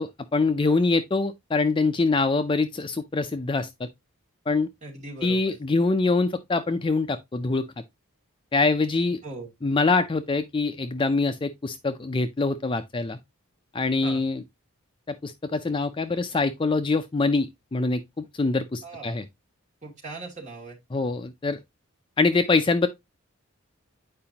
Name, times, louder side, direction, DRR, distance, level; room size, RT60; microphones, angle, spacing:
voice 1, 0.0-3.9 4.5-4.7 5.2-7.7 8.5-9.2 9.6-13.2 13.7-14.4 15.1-19.2 20.9-21.6 22.2-22.9, left 3 dB, 25° left, 0.4 m, -24 dB
voice 2, 4.8-5.5 9.2-9.5 14.0-14.2 18.8-19.1 19.8-20.8, right 3 dB, 35° right, 2.3 m, -39 dB
8.7 x 4.9 x 2.8 m
head